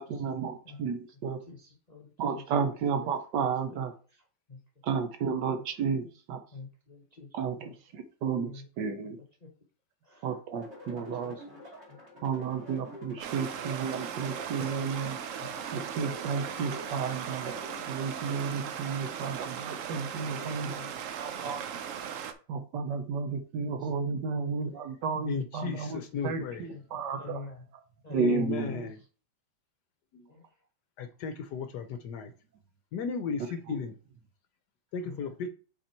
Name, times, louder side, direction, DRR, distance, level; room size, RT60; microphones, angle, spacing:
voice 1, 0.0-1.4 2.2-3.9 4.8-6.4 7.3-8.5 8.8-9.2 10.2-11.4 12.2-15.2 15.7-17.6 17.9-21.6 22.5-27.4 28.1-28.9, right 5 dB, 70° right, 1.3 m, -32 dB
voice 2, 1.5-2.5 3.0-3.1 3.4-3.8 4.1-4.6 5.0-5.1 5.5-5.7 6.5-7.4 7.6-7.8 8.2-8.7 9.2-9.5 10.0-10.4 10.8-11.6 11.9-12.3 13.1-13.2 13.5-13.6 14.8-14.9 15.4-15.5 18.6-19.0 19.9-20.9 21.4-21.6 23.8-24.5 25.1-25.3 26.0-26.1 26.6-26.8 27.2-27.7 28.0-28.5 30.3-30.5 35.0-35.3, left 4 dB, 35° left, 0.6 m, -47 dB
sound 1, 10.6-17.9, left 1 dB, 35° right, 2.5 m, -48 dB
Stream, 13.2-22.3, right 8 dB, 85° right, 0.7 m, -38 dB
voice 3, 25.3-26.7 28.2-29.0 30.1-30.3 31.0-32.3 32.9-34.0 34.9-35.5, left 6 dB, 70° left, 1.1 m, -35 dB
5.7 x 4.3 x 4.4 m
omnidirectional pair, 2.1 m